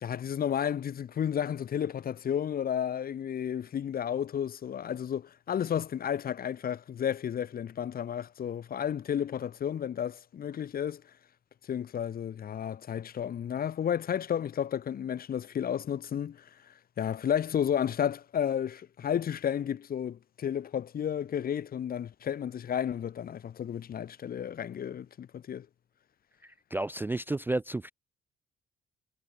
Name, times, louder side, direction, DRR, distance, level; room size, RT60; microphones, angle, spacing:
voice 1, 0.0-11.0 11.7-25.7, left 9 dB, 50° left, 0.8 m, -32 dB
voice 2, 26.7-27.9, right 2 dB, 10° right, 0.3 m, -31 dB
cardioid pair, 90°, 20 cm